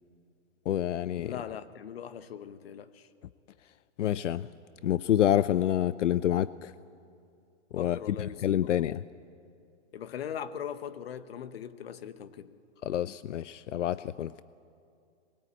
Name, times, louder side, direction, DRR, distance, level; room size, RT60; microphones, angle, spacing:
voice 1, 0.7-1.3 4.0-4.5 4.8-6.7 7.7-9.0 12.9-14.4, left 11 dB, 85° left, 0.6 m, -28 dB
voice 2, 1.2-3.1 7.8-8.7 9.9-12.5, left 9 dB, 55° left, 1.1 m, -40 dB
22.5 x 21.0 x 8.6 m
hypercardioid pair, 165°, 36 cm